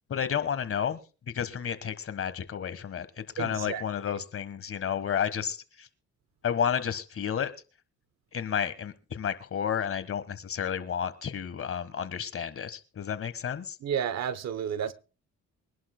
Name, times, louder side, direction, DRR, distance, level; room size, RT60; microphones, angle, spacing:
voice 1, 0.1-1.0 1.3-5.9 6.4-7.5 8.3-13.8, left 8 dB, 45° left, 1.4 m, -31 dB
voice 2, 3.4-3.8 13.8-14.9, right 8 dB, 60° right, 0.9 m, -31 dB
23.5 x 11.0 x 2.2 m
cardioid pair, 90°, 30 cm